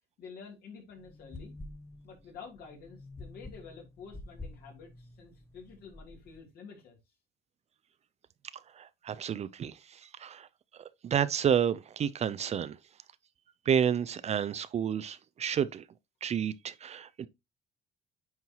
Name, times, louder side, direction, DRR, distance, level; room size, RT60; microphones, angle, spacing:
voice 1, 0.2-1.5 2.0-7.0, left 5 dB, 65° left, 3.1 m, -49 dB
sound 1, 1.0-6.4, left 2 dB, 15° left, 0.8 m, -48 dB
voice 2, 8.7-10.5 10.8-12.8 13.7-15.8 16.2-17.3, right 8 dB, 40° right, 0.5 m, -30 dB
9.4 x 4.5 x 2.9 m
cardioid pair, 110°, 17 cm